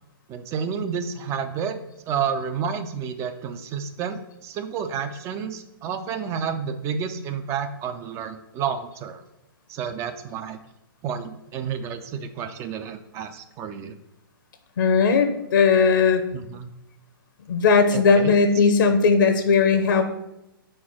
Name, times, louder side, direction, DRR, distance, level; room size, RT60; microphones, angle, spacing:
voice 1, 0.3-1.8 2.1-9.2 9.7-10.6 11.0-14.0 16.3-16.7 17.9-18.4, right 7 dB, 20° right, 8 dB, 0.4 m, -30 dB
voice 2, 14.8-16.2 17.5-20.0, left 5 dB, 60° left, 7 dB, 0.8 m, -18 dB
4.3 x 4.2 x 5.7 m, 0.89 s
hypercardioid pair, 125°, 12 cm